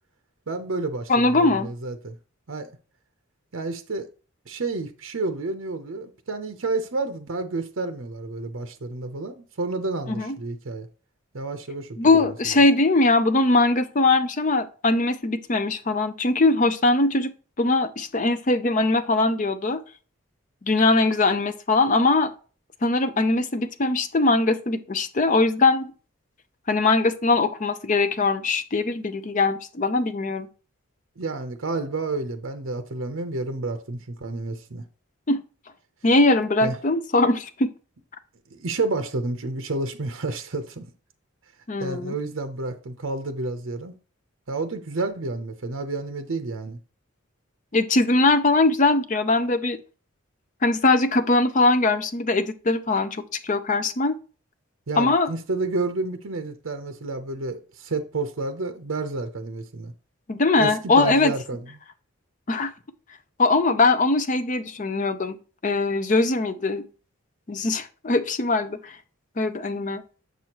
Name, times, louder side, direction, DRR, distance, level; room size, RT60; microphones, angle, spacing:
voice 1, 0.5-2.2 2.5-2.7 3.5-4.1 4.5-10.9 11.3-12.6 31.2-34.8 36.6-36.8 38.5-40.8 41.8-44.0 44.5-46.8 54.9-59.9 60.6-61.6, right 3 dB, 70° right, 0.7 m, -30 dB
voice 2, 1.1-1.7 10.1-10.4 12.0-17.3 17.6-19.8 20.7-22.3 22.8-25.9 26.7-30.5 35.3-35.4 36.0-37.7 41.7-42.1 47.7-49.8 50.6-54.2 55.0-55.3 60.3-61.3 62.5-62.7 63.4-65.4 65.6-66.8 67.5-69.0 69.4-70.0, left 3 dB, 35° left, 0.5 m, -21 dB
6.8 x 6.2 x 2.9 m
head